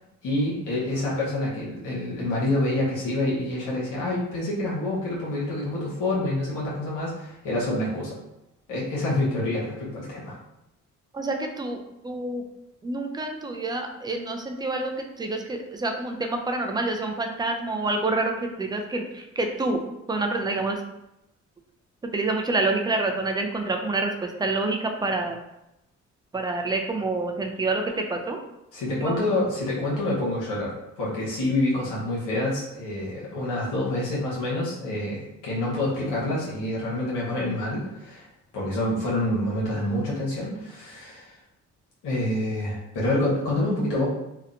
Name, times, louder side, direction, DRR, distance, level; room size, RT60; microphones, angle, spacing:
voice 1, 0.2-8.2 8.7-10.4 28.7-38.3 38.5-41.3 42.0-44.1, left 1 dB, 90° left, -6 dB, 0.9 m, -27 dB
voice 2, 11.1-12.4 12.8-19.8 20.1-20.8 22.1-25.4 26.3-28.4 29.0-29.4, right 2 dB, 15° right, 4 dB, 0.3 m, -27 dB
2.8 x 2.1 x 2.4 m, 0.88 s
cardioid pair, 90°, 30 cm